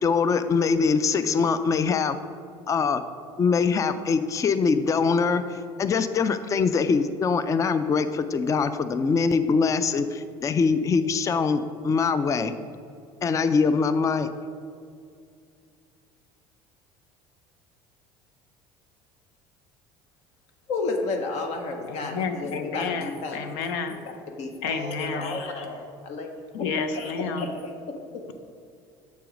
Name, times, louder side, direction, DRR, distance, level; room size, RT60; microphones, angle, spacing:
voice 1, 0.0-2.2 2.7-3.0 3.4-12.5 13.2-14.3, left 5 dB, 25° left, 11 dB, 0.3 m, -23 dB
voice 2, 20.7-23.5 24.4-26.3 26.9-28.2, left 3 dB, 65° left, 3 dB, 0.9 m, -32 dB
voice 3, 21.9-24.0 24.6-25.4 26.5-27.5, left 5 dB, 80° left, 9 dB, 0.6 m, -30 dB
7.0 x 4.6 x 5.0 m, 2.3 s
supercardioid pair, 85°, 13 cm